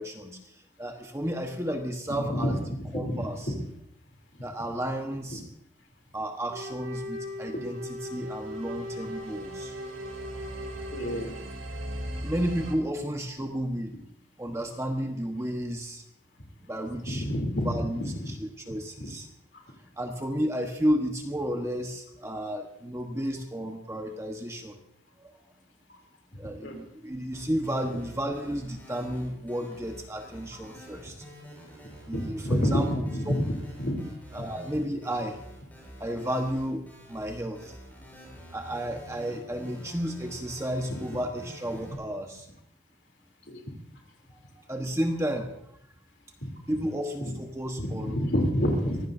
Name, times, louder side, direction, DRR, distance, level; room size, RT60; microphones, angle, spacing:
voice 1, 0.0-2.6 2.9-3.5 4.4-5.4 6.1-9.7 12.1-13.9 14.4-16.0 16.6-17.2 17.6-19.3 20.0-24.8 25.2-25.3 26.4-31.2 32.1-33.3 34.3-35.4 36.0-37.8 38.5-42.5 44.7-45.5 46.7-48.2, equal, 15° right, 3 dB, 1.2 m, -32 dB
voice 2, 2.1-2.5 2.8-3.5 7.5-7.6 10.9-11.3 17.0-18.3 19.0-19.1 26.6-26.8 32.1-32.8 33.1-33.4 33.8-34.0 34.4-34.5 40.9-41.0 43.5-43.6 46.4-46.5 47.2-47.3 47.8-49.0, equal, 55° left, 2 dB, 3.3 m, -28 dB
Wind instrument woodwind instrument, 6.5-11.7, equal, 65° right, 5.6 m, -39 dB
sound 1, 7.3-12.7, equal, 80° right, 2.5 m, -40 dB
sound 2, 27.3-41.9, equal, 10° left, 7.2 m, -47 dB
23.5 x 17.0 x 2.7 m, 0.73 s
head